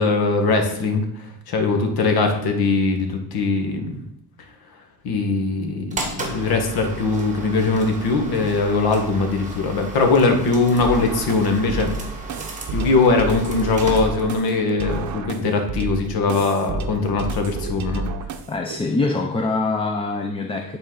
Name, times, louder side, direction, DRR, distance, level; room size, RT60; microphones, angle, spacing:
voice 1, 0.0-4.0 5.0-11.9 12.3-12.4 12.7-18.1, left 3 dB, 80° left, 4 dB, 1.4 m, -21 dB
sound 1, 5.9-14.6, right 2 dB, 20° right, 1.3 m, -34 dB
sound 2, 10.8-18.8, right 3 dB, 55° right, 0.6 m, -30 dB
voice 2, 18.5-20.8, left 3 dB, 15° left, 3 dB, 0.4 m, -24 dB
9.3 x 4.2 x 3.8 m, 0.73 s
cardioid pair, 145°, 36 cm